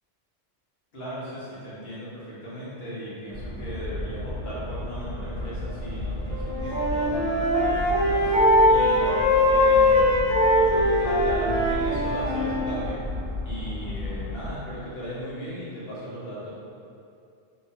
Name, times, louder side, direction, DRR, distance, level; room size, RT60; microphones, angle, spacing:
voice 1, 0.9-8.3 8.7-10.2 10.5-13.0 13.4-16.5, equal, 60° left, -10 dB, 1.1 m, -37 dB
sound 1, 3.3-14.6, left 1 dB, 60° right, 0.8 m, -33 dB
Wind instrument woodwind instrument, 6.3-12.7, left 1 dB, 35° right, 0.9 m, -21 dB
3.0 x 2.1 x 2.7 m, 2.4 s
omnidirectional pair, 1.2 m